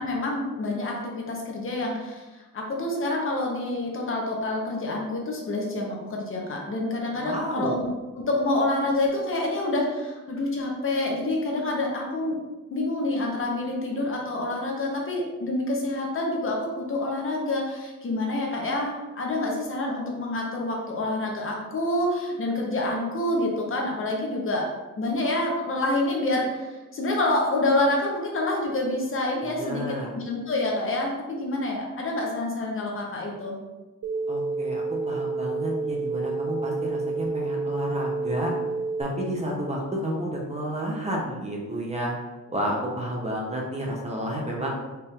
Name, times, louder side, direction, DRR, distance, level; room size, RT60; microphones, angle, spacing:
voice 1, 0.0-2.3 2.5-7.9 8.1-12.4 12.7-24.7 25.0-33.6, left 2 dB, 40° left, -1 dB, 0.8 m, -27 dB
voice 2, 7.2-7.8 29.6-30.2 34.3-38.5 39.0-42.1 42.5-44.7, equal, 20° right, -2 dB, 0.7 m, -30 dB
sound 1, 34.0-39.0, right 3 dB, 60° right, 0.5 m, -29 dB
4.4 x 2.5 x 3.5 m, 1.2 s
wide cardioid pair, 145°, 31 cm